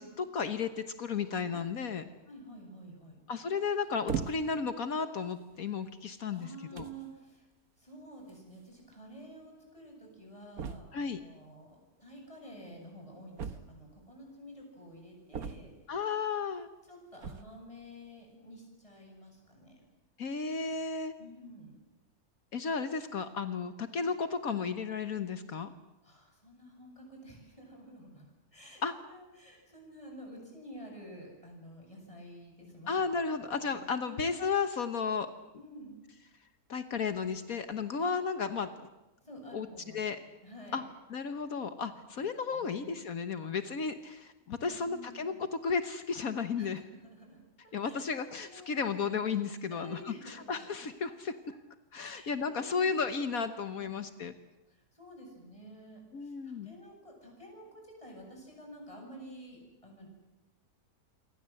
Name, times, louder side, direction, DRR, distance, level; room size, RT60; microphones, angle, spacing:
voice 1, 0.0-2.0 3.3-6.8 10.9-11.2 15.9-16.7 20.2-21.1 22.5-25.7 28.8-28.9 32.9-35.3 36.7-38.7 39.5-39.7 39.9-40.2 40.7-40.8 41.1-46.8 47.7-51.3 51.9-54.3 56.1-56.7, left 5 dB, 65° left, 9 dB, 1.6 m, -33 dB
voice 2, 2.2-3.2 6.3-7.5 7.8-15.7 16.9-19.7 21.2-21.8 26.0-28.3 28.5-32.9 33.2-33.3 33.6-34.4 35.6-36.0 39.2-40.1 40.4-40.9 41.9-42.2 42.5-42.9 44.6-45.4 46.6-48.0 48.4-49.0 49.7-50.6 52.0-52.9 53.8-53.9 54.7-60.1, equal, 20° left, 0 dB, 8.2 m, -50 dB
sound 1, 4.1-4.7 5.5-5.6 6.4-6.5 6.8-7.1 8.3-8.4 8.6-8.7 8.9-9.0 10.6-11.1 13.4-14.0 15.3-16.0 17.1-17.6, right 7 dB, 70° right, 1.7 m, -38 dB
27.5 x 24.5 x 7.8 m, 1.0 s
omnidirectional pair, 1.6 m